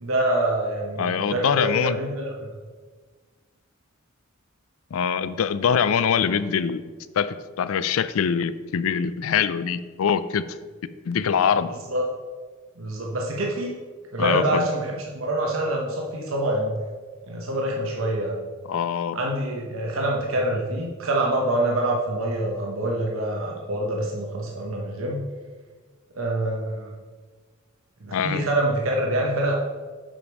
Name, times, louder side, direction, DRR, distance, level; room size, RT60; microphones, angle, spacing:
voice 1, 0.0-2.5 11.9-12.0 12.8-13.7 14.1-16.8 17.3-18.4 19.1-25.2 26.2-26.9 28.0-29.6, right 1 dB, 85° right, -1 dB, 1.0 m, -26 dB
voice 2, 1.0-2.0 4.9-6.8 7.2-10.4 11.1-11.7 14.2-14.7 18.7-19.2 28.1-28.5, left 7 dB, 85° left, 14 dB, 0.4 m, -23 dB
7.5 x 5.2 x 4.7 m, 1.4 s
head